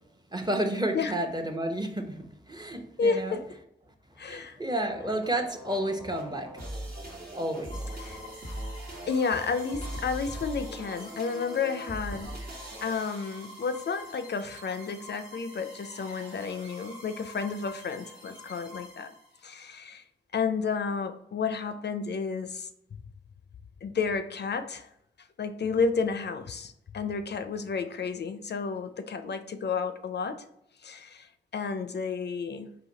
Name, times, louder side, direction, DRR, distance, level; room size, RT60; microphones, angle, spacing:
voice 1, 0.3-3.4 4.3-6.5 7.3-7.7, right 1 dB, 20° right, 5 dB, 0.7 m, -31 dB
voice 2, 3.0-3.5 4.2-4.6 8.0-8.2 9.1-12.4 12.8-19.1 19.4-20.0 20.3-22.7 23.8-24.9 25.4-30.4 30.8-32.8, left 5 dB, 60° left, 10 dB, 0.4 m, -31 dB
sound 1, 4.7-14.0, right 1 dB, 50° right, 1.2 m, -41 dB
sound 2, 7.7-19.5, left 1 dB, 70° right, 1.4 m, -47 dB
4.0 x 2.6 x 3.9 m, 0.78 s
cardioid pair, 45°, 20 cm